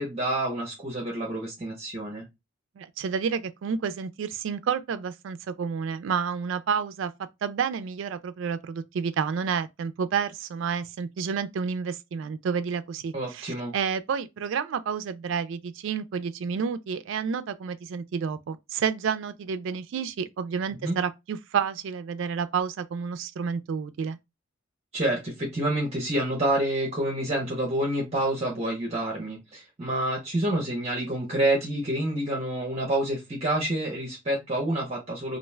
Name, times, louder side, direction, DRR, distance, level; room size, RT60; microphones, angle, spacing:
voice 1, 0.0-2.3 13.1-13.7 20.8-21.0 24.9-35.4, right 1 dB, 30° right, 0.7 m, -28 dB
voice 2, 2.8-7.1 7.4-24.2, right 6 dB, 65° right, 0.3 m, -30 dB
2.4 x 2.3 x 3.1 m
head